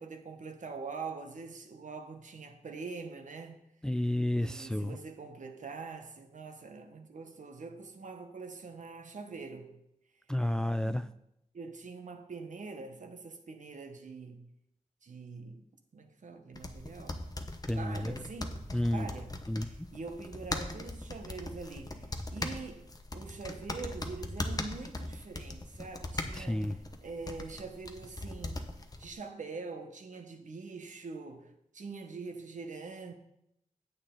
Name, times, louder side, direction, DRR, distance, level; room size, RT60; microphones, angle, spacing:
voice 1, 0.0-3.6 4.3-9.8 10.8-11.1 11.5-14.4 15.0-15.7 15.9-17.3 17.7-22.1 22.3-22.9 23.1-28.7 29.0-33.1, right 4 dB, 65° right, 1.1 m, -44 dB
voice 2, 3.8-5.0 10.3-11.1 17.7-18.2 18.7-19.1 19.5-19.9 26.3-26.8, left 1 dB, 5° left, 0.3 m, -31 dB
sound 1, 16.6-29.1, left 2 dB, 30° left, 1.0 m, -40 dB
9.0 x 8.1 x 3.8 m
wide cardioid pair, 75°, 14 cm